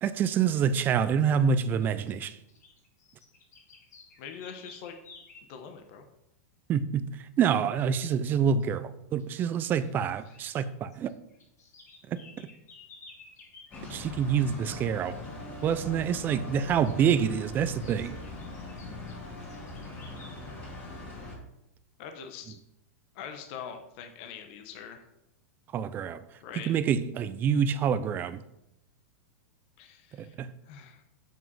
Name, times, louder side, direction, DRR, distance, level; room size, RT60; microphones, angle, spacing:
voice 1, 0.0-2.4 6.7-7.1 7.4-11.1 12.1-12.2 13.9-15.2 15.6-18.2 25.7-26.2 26.5-28.4 30.1-30.5, right 7 dB, 20° right, 0.5 m, -27 dB
sound 1, 1.2-1.4 1.8-5.5 8.1-8.3 8.6-8.8 9.2-10.6 10.9-13.9 16.8-17.3 17.8-20.4, left 3 dB, 90° left, 2.4 m, -54 dB
voice 2, 4.2-5.0 5.5-6.0 22.0-22.6 23.1-25.0 26.4-26.7 29.8-30.3 30.7-31.0, left 7 dB, 45° left, 1.1 m, -43 dB
sound 2, 13.7-21.4, left 2 dB, 15° left, 2.7 m, -41 dB
7.4 x 5.8 x 5.4 m
supercardioid pair, 150°, 9 cm